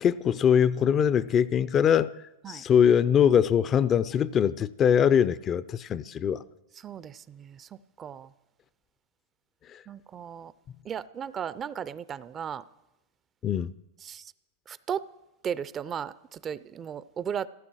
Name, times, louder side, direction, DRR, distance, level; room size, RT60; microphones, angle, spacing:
voice 1, 0.0-2.1 2.5-6.4 9.7-9.8 13.4-13.7, left 8 dB, 30° left, 0.5 m, -22 dB
voice 2, 6.8-8.3 9.9-10.5 10.8-12.6 14.0-14.3 14.7-15.0 15.4-17.5, right 8 dB, 30° right, 0.5 m, -36 dB
15.5 x 13.0 x 6.3 m
hypercardioid pair, 120°, 0 cm